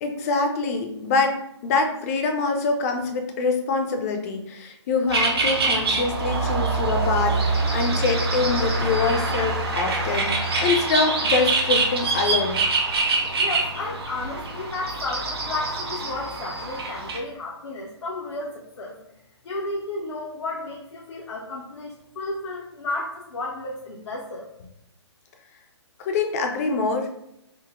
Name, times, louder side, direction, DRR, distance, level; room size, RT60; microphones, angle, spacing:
voice 1, 0.0-12.6 26.0-27.1, left 4 dB, 35° left, 5 dB, 0.5 m, -25 dB
sound 1, 5.1-17.2, right 3 dB, 60° right, 0.8 m, -25 dB
voice 2, 13.4-19.0 19.4-24.5, left 2 dB, 70° left, -3 dB, 0.7 m, -33 dB
3.7 x 2.0 x 3.6 m, 0.83 s
figure-of-eight pair, 140°, 15 cm